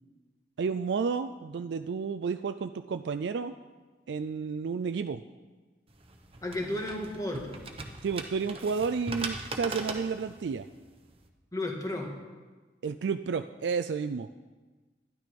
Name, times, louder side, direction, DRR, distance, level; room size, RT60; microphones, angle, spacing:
voice 1, 0.6-3.5 4.1-5.2 8.0-10.7 12.8-14.3, right 5 dB, 80° right, 9 dB, 0.4 m, -31 dB
sound 1, 5.9-11.3, right 3 dB, 30° right, 1.0 m, -40 dB
voice 2, 6.4-7.6 11.5-12.1, left 1 dB, 20° left, 1 dB, 1.7 m, -33 dB
12.0 x 11.0 x 5.2 m, 1.3 s
head